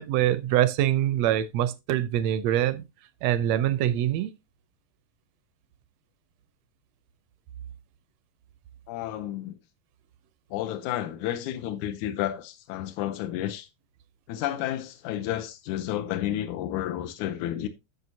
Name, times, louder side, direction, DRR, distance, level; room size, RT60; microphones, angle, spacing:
voice 1, 0.0-2.8 3.2-4.3, right 12 dB, 80° right, 1.5 m, -24 dB
voice 2, 8.9-9.6 10.5-13.7 14.3-17.7, left 12 dB, 90° left, 2.1 m, -31 dB
10.5 x 6.9 x 2.7 m
omnidirectional pair, 3.5 m